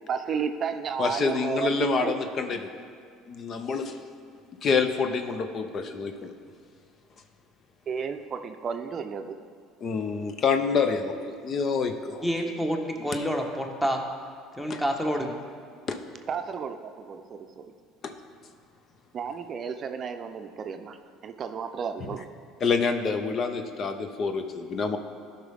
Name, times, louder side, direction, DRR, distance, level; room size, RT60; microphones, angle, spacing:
voice 1, 0.1-2.1 7.9-9.4 16.3-17.7 19.1-21.0 21.2-22.3, right 6 dB, 45° right, 7 dB, 0.5 m, -32 dB
voice 2, 1.0-2.7 3.3-3.9 4.6-6.3 9.8-12.2 14.7-14.8 15.9-16.0 18.0-18.1 22.6-25.0, left 5 dB, 45° left, 7 dB, 0.7 m, -27 dB
voice 3, 12.2-14.0 14.6-15.3, equal, 5° left, 3 dB, 1.2 m, -28 dB
13.0 x 5.5 x 3.5 m, 2.3 s
hypercardioid pair, 75°, 0 cm